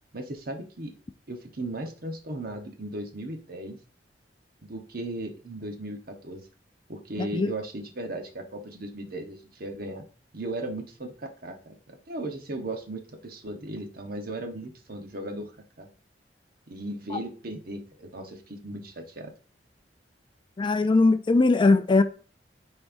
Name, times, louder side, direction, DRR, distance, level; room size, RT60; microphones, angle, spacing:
voice 1, 0.1-0.9 1.3-3.8 4.6-6.5 6.9-10.1 10.3-15.5 15.8-15.9 16.7-19.3, right 1 dB, 55° right, 1.1 m, -37 dB
voice 2, 7.2-7.5 17.1-17.2 20.6-22.0, left 3 dB, 30° left, 0.4 m, -20 dB
12.0 x 4.3 x 2.6 m
head